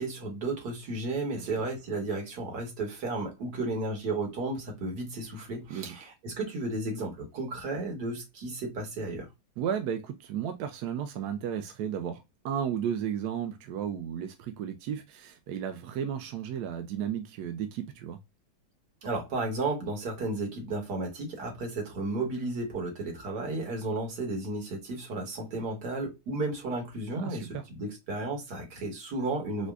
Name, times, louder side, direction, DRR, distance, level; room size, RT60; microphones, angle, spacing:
voice 1, 0.0-9.3 19.0-29.7, right 2 dB, 60° right, 1.8 m, -33 dB
voice 2, 9.6-18.2 27.2-27.6, right 8 dB, 75° right, 0.9 m, -34 dB
5.0 x 2.2 x 2.2 m
omnidirectional pair, 2.1 m